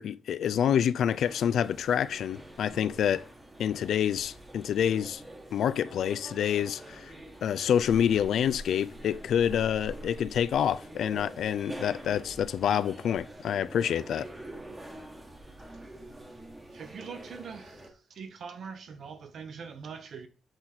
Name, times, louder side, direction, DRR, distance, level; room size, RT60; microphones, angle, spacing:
voice 1, 0.0-3.3 3.6-5.2 5.5-7.1 7.4-14.3, left 9 dB, 70° left, 0.3 m, -27 dB
sound 1, 1.1-17.9, right 1 dB, 15° right, 1.1 m, -45 dB
voice 2, 16.7-17.8 18.1-20.3, right 6 dB, 55° right, 0.9 m, -42 dB
7.8 x 4.0 x 4.3 m
wide cardioid pair, 155°, 0 cm